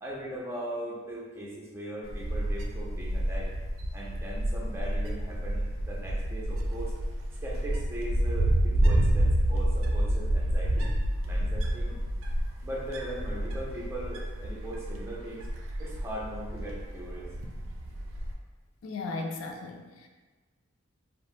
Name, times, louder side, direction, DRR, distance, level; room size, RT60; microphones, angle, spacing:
voice 1, 0.0-3.5 3.9-6.9 7.4-10.9 11.2-12.0 12.6-15.5 15.8-17.3, right 1 dB, 15° right, -5 dB, 0.5 m, -39 dB
Wind, 2.0-18.3, right 1 dB, 80° right, 0.4 m, -29 dB
voice 2, 18.8-20.1, left 3 dB, 85° left, 3 dB, 0.4 m, -36 dB
2.6 x 2.0 x 3.1 m, 1.3 s
head